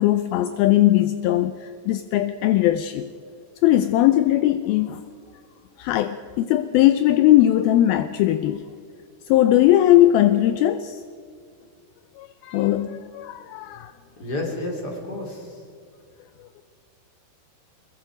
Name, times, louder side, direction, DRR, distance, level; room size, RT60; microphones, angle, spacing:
voice 1, 0.0-3.1 3.6-5.0 5.8-8.6 9.3-11.0 12.2-13.9, left 13 dB, 80° left, 10 dB, 2.4 m, -19 dB
voice 2, 14.2-15.6, left 2 dB, 25° left, 1 dB, 4.1 m, -30 dB
23.0 x 22.0 x 5.1 m, 2.2 s
omnidirectional pair, 4.5 m